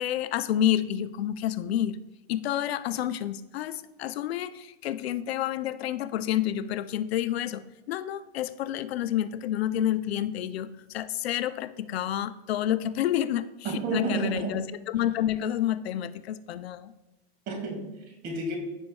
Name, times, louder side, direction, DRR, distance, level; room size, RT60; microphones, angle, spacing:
voice 1, 0.0-2.0 2.3-7.6 7.9-16.9, left 11 dB, 75° left, 12 dB, 0.6 m, -29 dB
voice 2, 13.6-14.6 17.5-18.6, right 3 dB, 30° right, 2 dB, 2.0 m, -31 dB
15.0 x 5.3 x 2.3 m, 1.0 s
supercardioid pair, 155°, 32 cm